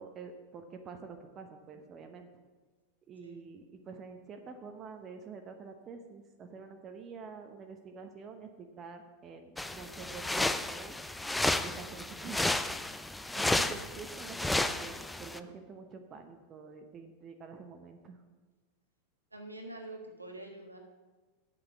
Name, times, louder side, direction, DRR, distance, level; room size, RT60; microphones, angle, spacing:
voice 1, 0.0-2.4 3.1-11.0 11.5-12.5 13.3-18.2, right 5 dB, 25° right, 6 dB, 0.8 m, -47 dB
sound 1, 9.6-15.4, left 2 dB, 5° left, 0.4 m, -32 dB
voice 2, 19.3-20.8, right 2 dB, 85° right, 3 dB, 1.4 m, -45 dB
8.7 x 6.5 x 6.0 m, 1.3 s
figure-of-eight pair, 90°, 0 cm